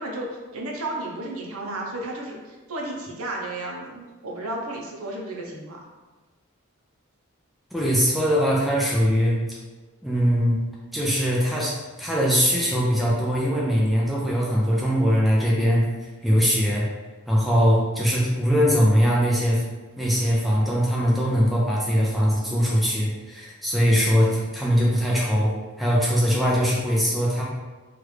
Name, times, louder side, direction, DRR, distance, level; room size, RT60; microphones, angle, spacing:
voice 1, 0.0-5.8, right 1 dB, 75° right, -1 dB, 0.6 m, -33 dB
voice 2, 7.7-9.6 10.0-10.6 10.9-11.7 12.0-16.9 17.3-19.6 20.0-27.4, equal, ahead, -5 dB, 0.4 m, -21 dB
3.1 x 2.4 x 3.2 m, 1.3 s
head